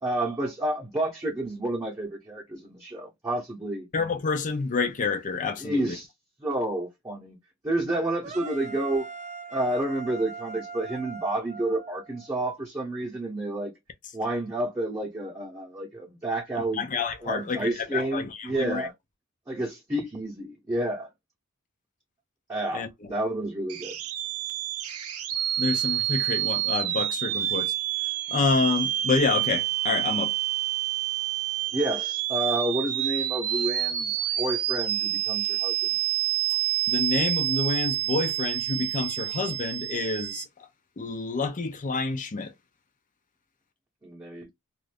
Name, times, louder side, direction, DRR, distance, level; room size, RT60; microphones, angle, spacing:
voice 1, 0.0-3.9 5.6-6.1 6.4-7.4 7.6-9.1 9.5-13.7 14.1-16.8 17.2-18.9 19.5-21.1 22.5-24.0 31.7-35.7 44.0-44.5, right 1 dB, 15° right, 0.9 m, -30 dB
voice 2, 3.9-6.0 16.7-18.9 22.7-23.1 25.6-27.7 28.3-30.4 36.9-40.4 41.0-42.5, left 4 dB, 35° left, 0.6 m, -28 dB
sound 1, 8.2-12.3, right 4 dB, 35° right, 0.4 m, -40 dB
sound 2, 23.7-40.4, right 13 dB, 80° right, 0.6 m, -28 dB
2.6 x 2.4 x 3.3 m
head